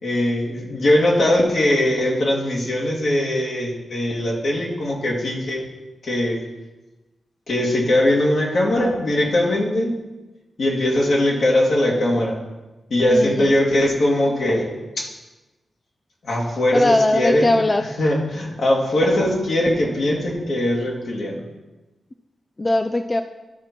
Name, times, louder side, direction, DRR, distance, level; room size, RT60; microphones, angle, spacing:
voice 1, 0.0-5.7 6.0-6.4 7.5-9.9 10.6-12.4 12.9-15.1 16.2-17.5 18.0-21.4, left 1 dB, 65° left, -2 dB, 2.3 m, -20 dB
voice 2, 13.1-13.5 16.7-17.8 22.6-23.2, left 2 dB, 25° left, 8 dB, 0.4 m, -20 dB
12.0 x 4.3 x 6.0 m, 1.1 s
cardioid pair, 75°, 0 cm